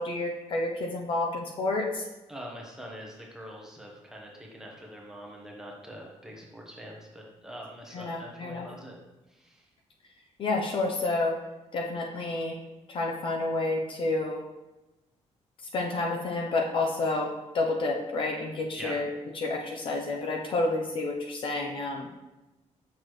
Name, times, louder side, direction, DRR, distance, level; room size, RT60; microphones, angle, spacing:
voice 1, 0.0-2.1 7.9-8.7 10.4-11.4 11.7-12.5 12.9-14.4 15.7-19.1 19.3-22.1, left 2 dB, 45° left, 1 dB, 0.7 m, -29 dB
voice 2, 2.3-9.0 9.3-9.7 18.8-18.9, equal, 5° right, -2 dB, 1.1 m, -44 dB
6.3 x 6.2 x 3.2 m, 1.0 s
cardioid pair, 170°, 12 cm